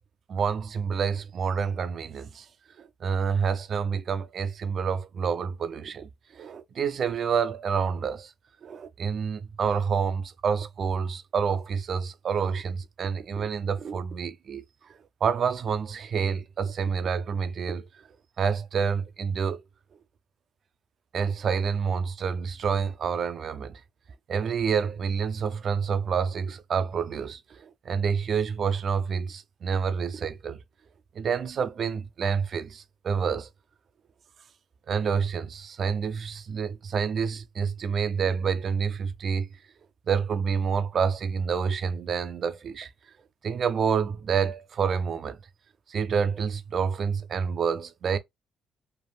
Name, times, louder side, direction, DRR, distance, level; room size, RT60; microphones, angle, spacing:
voice 1, 0.3-2.5 2.8-8.3 8.6-14.6 15.2-17.9 18.4-19.6 21.1-23.8 24.3-30.6 31.2-33.5 34.9-39.5 40.1-42.9 43.4-45.4 45.9-48.2, right 6 dB, 55° right, 0.4 m, -28 dB
3.3 x 2.4 x 2.2 m
cardioid pair, 90°, 0 cm